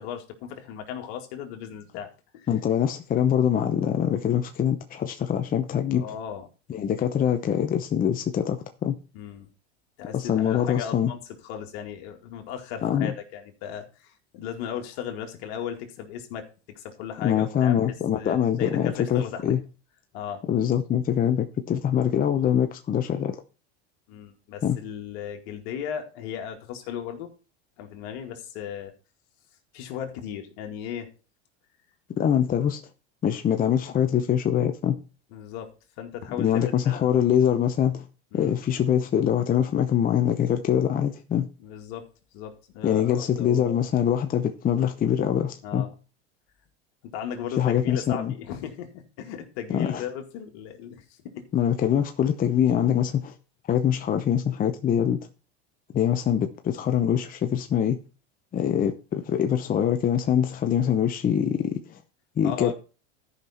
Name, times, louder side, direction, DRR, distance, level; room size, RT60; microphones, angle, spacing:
voice 1, 0.0-2.1 2.3-2.5 5.9-6.5 9.1-9.5 10.0-17.8 18.1-19.4 20.1-20.5 24.1-27.3 27.8-28.9 29.7-31.1 35.3-35.7 36.0-37.2 38.3-38.5 41.6-42.1 42.3-43.9 45.6-45.9 47.1-51.5 62.4-62.7, left 8 dB, 65° left, 2.2 m, -36 dB
voice 2, 2.5-6.1 6.7-9.0 10.1-11.1 12.8-13.1 17.2-19.6 20.5-23.4 24.6-24.8 32.1-32.8 33.2-35.0 36.4-38.1 38.3-41.5 42.8-45.9 47.6-48.3 49.7-50.0 51.5-53.3 53.7-55.3 55.9-58.0 58.5-62.0 62.4-62.7, left 9 dB, 25° left, 0.8 m, -24 dB
13.0 x 5.6 x 4.3 m
supercardioid pair, 110°, 33 cm